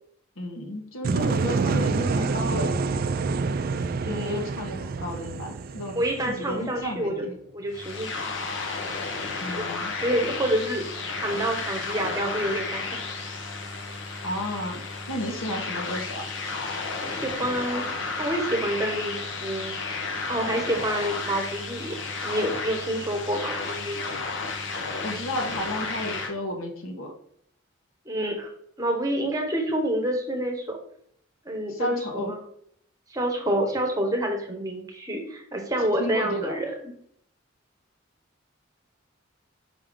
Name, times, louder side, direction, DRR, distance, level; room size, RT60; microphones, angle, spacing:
voice 1, 0.4-2.9 4.0-6.0 6.3-7.3 9.4-9.9 14.2-14.8 15.1-16.2 25.0-27.1 31.7-32.3 36.0-36.5, equal, 90° left, 2 dB, 1.5 m, -32 dB
sound 1, 1.0-6.9, right 4 dB, 45° right, 0.3 m, -27 dB
voice 2, 4.1-4.4 5.9-7.3 7.5-8.3 9.2-9.7 10.0-13.0 17.0-17.9 18.2-19.2 19.4-22.0 22.2-24.1 28.0-28.5 28.8-30.8 31.4-32.4 33.1-36.9, right 1 dB, 15° right, 2 dB, 1.1 m, -28 dB
sound 2, 7.7-26.3, left 3 dB, 60° left, 1.0 m, -32 dB
5.8 x 3.6 x 5.1 m, 0.66 s
head